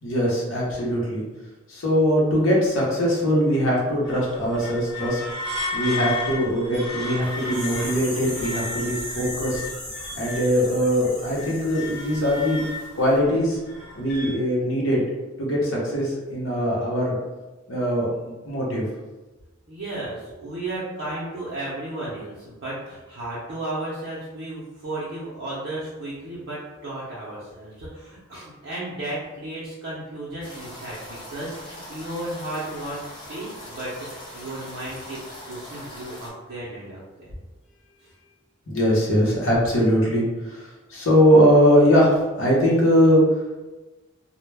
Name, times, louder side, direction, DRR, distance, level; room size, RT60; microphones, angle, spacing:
voice 1, 0.0-1.2 1.7-5.2 5.7-9.6 10.1-12.6 12.9-13.6 14.0-15.0 15.4-17.2 17.7-18.8 38.7-43.2, equal, 80° left, -4 dB, 0.8 m, -21 dB
sound 1, 4.0-10.7 11.1-14.3, left 3 dB, 5° right, 0.9 m, -34 dB
sound 2, 7.2-12.9 13.1-13.2, left 1 dB, 40° left, 1.0 m, -37 dB
voice 2, 19.7-37.4 38.0-38.1, right 1 dB, 60° right, -9 dB, 0.6 m, -34 dB
sound 3, 30.4-36.3, equal, 25° left, 0.6 m, -41 dB
2.1 x 2.0 x 3.2 m, 1.2 s
head